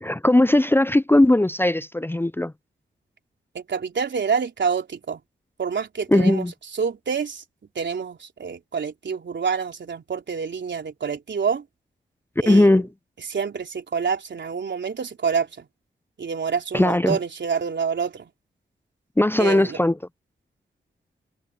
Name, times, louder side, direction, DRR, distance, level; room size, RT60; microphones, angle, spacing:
voice 1, 0.0-2.5 6.1-6.5 12.5-12.9 16.7-17.2 19.2-19.9, left 1 dB, 10° left, 0.6 m, -18 dB
voice 2, 3.5-5.2 5.6-6.5 6.8-7.4 7.8-11.6 12.4-12.8 13.3-15.7 16.2-18.3 19.4-19.8, right 6 dB, 65° right, 3.8 m, -27 dB
supercardioid pair, 45°, 20 cm